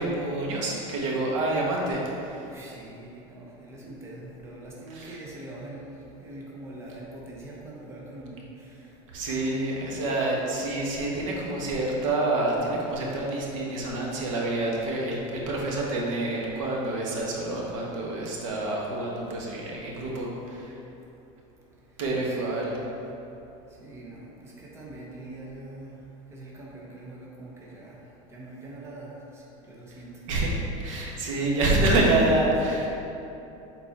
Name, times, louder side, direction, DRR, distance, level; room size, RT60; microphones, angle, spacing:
voice 1, 0.0-2.5 4.9-5.1 9.1-20.7 22.0-22.8 30.3-30.5 30.8-32.9, right 2 dB, 90° right, -2 dB, 1.3 m, -27 dB
voice 2, 2.4-8.8 22.2-22.4 23.8-25.9 26.3-28.0 28.3-29.1 29.3-30.1 30.9-31.1 32.5-32.6, right 2 dB, 15° right, -4 dB, 1.0 m, -43 dB
6.9 x 4.0 x 4.2 m, 2.9 s
supercardioid pair, 150°, 16 cm